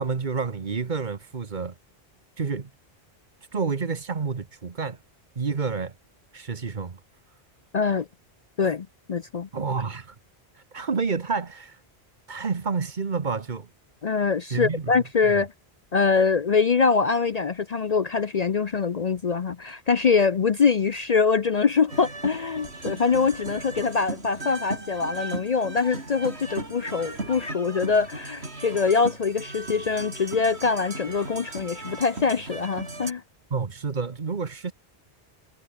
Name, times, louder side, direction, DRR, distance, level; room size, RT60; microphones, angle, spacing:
voice 1, 0.0-1.7 2.4-2.7 3.5-5.0 5.3-5.9 6.3-7.0 9.5-10.1 10.7-11.8 12.3-13.7 14.5-14.9 15.2-15.4 33.5-34.7, right 5 dB, 45° right, 1.3 m, -29 dB
voice 2, 7.7-8.1 8.6-9.5 14.0-15.5 15.9-33.2, left 5 dB, 45° left, 0.7 m, -24 dB
sound 1, 21.9-33.1, right 2 dB, 80° right, 4.5 m, -37 dB
omnidirectional pair, 1.1 m